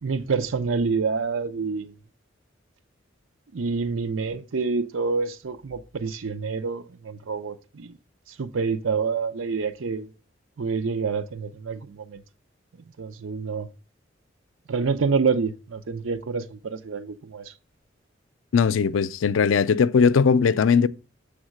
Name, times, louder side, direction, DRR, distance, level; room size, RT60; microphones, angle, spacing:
voice 1, 0.0-1.9 3.5-8.0 8.3-10.1 10.6-12.2 13.0-13.7 14.7-17.5, right 5 dB, 85° right, 0.6 m, -27 dB
voice 2, 18.5-20.9, left 6 dB, 80° left, 0.4 m, -19 dB
7.2 x 3.6 x 6.3 m
head